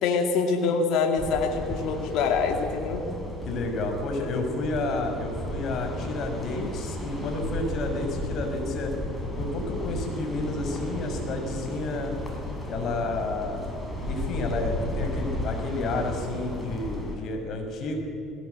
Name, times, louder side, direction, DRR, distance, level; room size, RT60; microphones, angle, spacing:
voice 1, 0.0-3.0, left 5 dB, 70° left, 4 dB, 2.4 m, -25 dB
sound 1, 1.2-17.1, left 1 dB, 15° left, 6.4 m, -34 dB
voice 2, 3.4-8.9 9.4-12.1 12.7-13.7 14.0-18.0, left 2 dB, 50° left, 4 dB, 5.4 m, -30 dB
20.0 x 18.0 x 8.0 m, 2.6 s
supercardioid pair, 100°, 0 cm